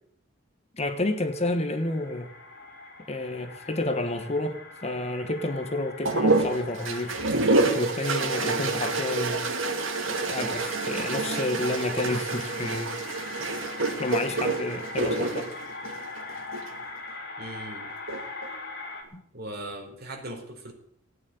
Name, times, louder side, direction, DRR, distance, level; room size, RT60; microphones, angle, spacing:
voice 1, 0.7-2.3 3.1-7.2 7.6-9.5 10.0-13.2 14.0-15.5 19.1-19.2, left 2 dB, 30° left, 1.4 m, -30 dB
sound 1, 0.9-19.0, left 3 dB, 55° left, 3.5 m, -41 dB
sound 2, 6.0-16.7 17.9-18.5, right 3 dB, 80° right, 2.3 m, -28 dB
voice 2, 8.4-8.8 17.4-17.9 19.3-20.7, right 1 dB, 50° right, 4.3 m, -39 dB
16.5 x 9.5 x 9.2 m
head